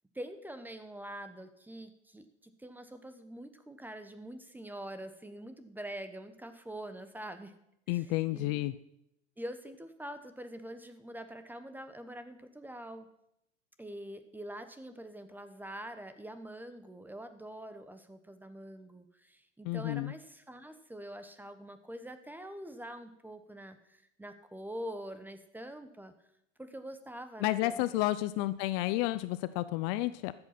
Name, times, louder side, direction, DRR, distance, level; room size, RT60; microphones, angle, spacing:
voice 1, 0.1-7.5 7.9-8.6 9.4-13.1 13.8-26.1 26.6-28.1 28.3-28.6, right 1 dB, 5° right, 10 dB, 1.0 m, -45 dB
voice 2, 7.9-8.7 19.7-20.1 27.4-30.3, left 17 dB, 50° left, 15 dB, 0.6 m, -31 dB
13.0 x 7.8 x 5.8 m, 0.80 s
hypercardioid pair, 110°, 38 cm